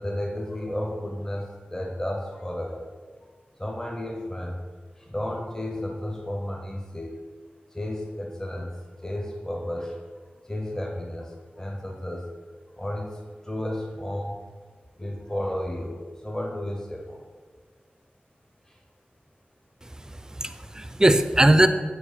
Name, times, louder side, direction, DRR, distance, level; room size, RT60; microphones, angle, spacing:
voice 1, 0.0-2.9 3.2-3.3 3.6-4.6 5.0-7.2 7.7-8.7 9.0-10.0 10.4-12.3 12.8-14.4 15.0-17.2 18.7-18.8, left 1 dB, 15° left, 1 dB, 0.7 m, -33 dB
voice 2, 19.8-21.7, right 1 dB, 20° right, 10 dB, 0.4 m, -20 dB
5.0 x 4.6 x 4.9 m, 1.5 s
wide cardioid pair, 75°, 4 cm